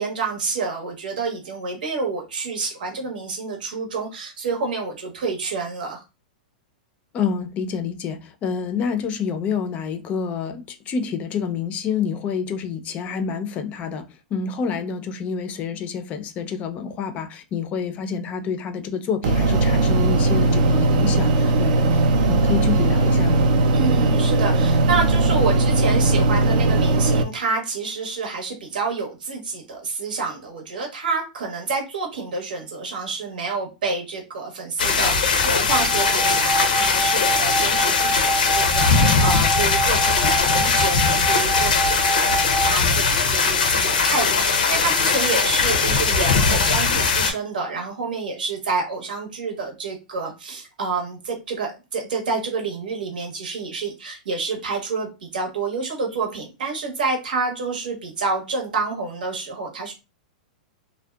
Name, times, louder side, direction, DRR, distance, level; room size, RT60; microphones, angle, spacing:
voice 1, 0.0-6.0 23.7-59.9, right 4 dB, 85° right, 0.9 m, -28 dB
voice 2, 7.1-23.5, left 6 dB, 30° left, 0.4 m, -28 dB
sound 1, 19.2-27.2, right 2 dB, 65° right, 0.3 m, -18 dB
sound 2, 34.8-47.3, left 5 dB, 90° left, 0.5 m, -20 dB
sound 3, 35.7-42.7, right 2 dB, 30° right, 0.7 m, -26 dB
2.6 x 2.1 x 2.2 m
hypercardioid pair, 130°, 5 cm